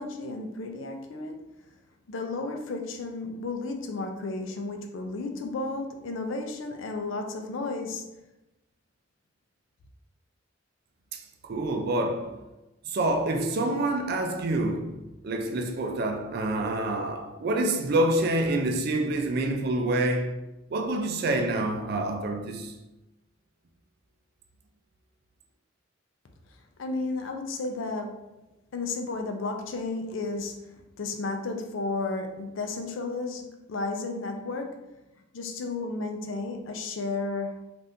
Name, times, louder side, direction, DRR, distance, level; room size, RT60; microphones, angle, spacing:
voice 1, 0.0-1.4 2.1-8.1 26.8-28.2 28.7-34.8 35.3-37.6, left 3 dB, 75° left, 0.5 m, -33 dB
voice 2, 11.1-12.4 12.9-20.3 20.7-22.8, right 1 dB, 50° right, 0.4 m, -27 dB
3.5 x 2.5 x 2.7 m
head